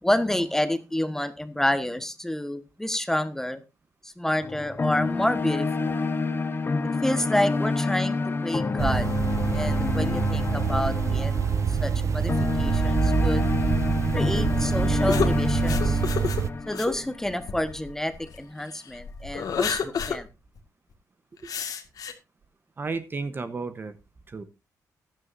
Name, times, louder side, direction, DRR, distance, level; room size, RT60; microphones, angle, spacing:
voice 1, 0.0-3.6 4.0-6.0 7.0-9.1 9.5-11.3 11.8-13.5 14.1-16.0 16.7-20.3, left 1 dB, 5° left, 10 dB, 1.3 m, -28 dB
sound 1, 4.4-17.6, left 3 dB, 35° left, 1.3 m, -28 dB
sound 2, 8.8-16.5, right 7 dB, 50° right, 0.5 m, -26 dB
sound 3, 15.1-18.4 18.9-20.2 20.6-20.7 21.4-22.1, left 6 dB, 70° left, 1.9 m, -30 dB
voice 2, 22.8-23.9 24.3-24.4, right 4 dB, 30° right, 11 dB, 1.0 m, -33 dB
15.5 x 11.0 x 2.6 m, 0.26 s
cardioid pair, 105°, 7 cm